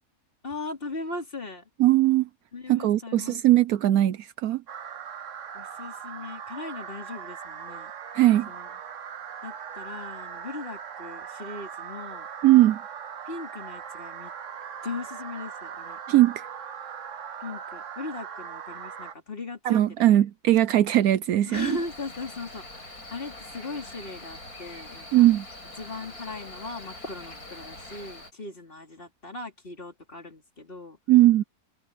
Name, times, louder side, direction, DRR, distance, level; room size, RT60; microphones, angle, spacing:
voice 1, 0.4-1.7 2.5-3.6 5.5-7.9 8.5-8.7 9.4-12.3 13.2-14.3 14.8-16.0 17.4-20.1 21.5-25.3 25.8-31.0, left 3 dB, 35° left, 3.6 m, -38 dB
voice 2, 1.8-2.3 2.7-4.6 8.1-8.5 12.4-12.8 16.1-16.5 19.6-21.7 25.1-25.5 31.1-31.4, right 14 dB, 75° right, 1.1 m, -19 dB
sound 1, 4.7-19.1, right 7 dB, 55° right, 1.3 m, -40 dB
Cricket, 21.5-28.3, left 1 dB, 75° left, 8.7 m, -43 dB
omnidirectional pair, 1.6 m